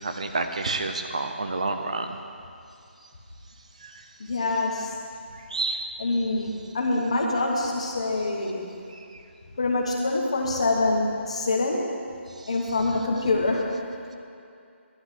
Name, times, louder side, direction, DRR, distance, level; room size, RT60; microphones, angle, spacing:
voice 1, 0.0-2.2 3.8-4.1 5.3-5.9 9.0-9.1 12.4-12.5, right 3 dB, 30° right, 6 dB, 0.6 m, -30 dB
voice 2, 4.2-4.9 6.0-8.6 9.6-11.9 12.5-13.6, left 2 dB, 30° left, -1 dB, 1.2 m, -25 dB
12.0 x 6.0 x 8.2 m, 2.5 s
figure-of-eight pair, 180°, 7 cm